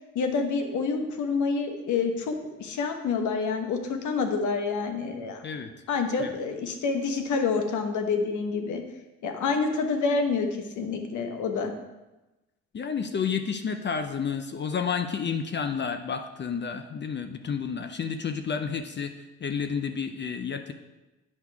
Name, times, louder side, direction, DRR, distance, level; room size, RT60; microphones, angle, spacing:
voice 1, 0.1-2.3 2.6-5.4 5.9-8.8 9.2-11.7, left 4 dB, 75° left, 5 dB, 1.1 m, -27 dB
voice 2, 12.7-19.1 19.4-20.7, left 6 dB, 35° left, 7 dB, 0.6 m, -30 dB
8.4 x 5.4 x 4.6 m, 1.1 s
cardioid pair, 90°, 30 cm